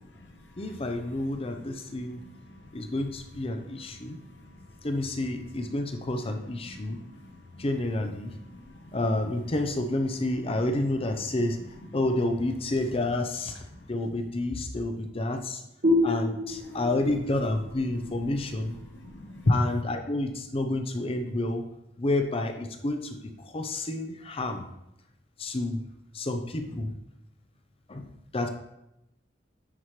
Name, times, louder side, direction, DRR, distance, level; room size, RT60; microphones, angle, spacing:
voice 1, 0.6-2.2 2.7-4.2 4.8-7.0 7.6-8.3 8.9-11.6 11.9-15.6 16.0-18.8 19.5-21.6 22.0-24.6 25.4-25.8 26.1-26.9 27.9-28.5, left 2 dB, 35° left, 5 dB, 0.6 m, -29 dB
voice 2, 2.1-2.7 4.0-4.5 6.7-7.7 8.4-9.0 13.7-13.8 16.7-16.8 18.9-19.5, left 2 dB, 75° left, 2 dB, 0.8 m, -34 dB
sound 1, 15.8-19.2, left 2 dB, 55° right, 2.0 m, -29 dB
9.6 x 4.8 x 3.2 m, 0.83 s
head